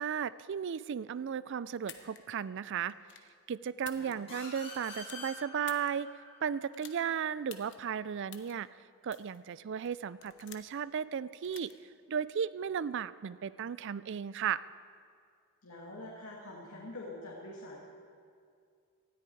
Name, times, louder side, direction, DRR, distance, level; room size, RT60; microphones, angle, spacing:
voice 1, 0.0-2.9 3.5-6.1 6.4-8.7 9.0-11.7 12.1-14.6, right 7 dB, 55° right, 17 dB, 0.4 m, -35 dB
sound 1, 1.8-2.2 2.9-3.3 3.7-4.4 4.7-5.9 6.7-7.0 7.5-7.8 8.3-8.5 9.1-9.4 9.9-10.8 11.4-11.7, left 10 dB, 55° left, 1.0 m, -50 dB
sound 2, 4.3-7.7, left 2 dB, 25° left, 4.0 m, -48 dB
voice 2, 15.6-17.8, left 1 dB, 85° left, -4 dB, 2.2 m, -45 dB
18.5 x 13.5 x 4.7 m, 2.3 s
head